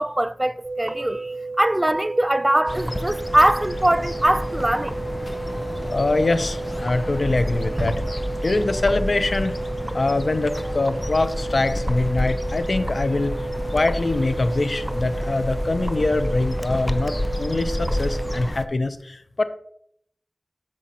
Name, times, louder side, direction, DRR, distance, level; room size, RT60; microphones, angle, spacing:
voice 1, 0.0-4.9, right 1 dB, 25° right, 0.4 m, -21 dB
sound 1, 0.6-18.5, right 3 dB, 65° right, 0.7 m, -32 dB
sound 2, 2.7-18.7, left 1 dB, 30° left, 0.5 m, -29 dB
voice 2, 5.9-8.0 8.4-9.6 9.9-13.3 13.7-19.4, left 2 dB, 75° left, 0.6 m, -23 dB
sound 3, 7.8-10.3, right 1 dB, 45° right, 1.5 m, -33 dB
13.5 x 5.1 x 2.9 m
wide cardioid pair, 40°, 0 cm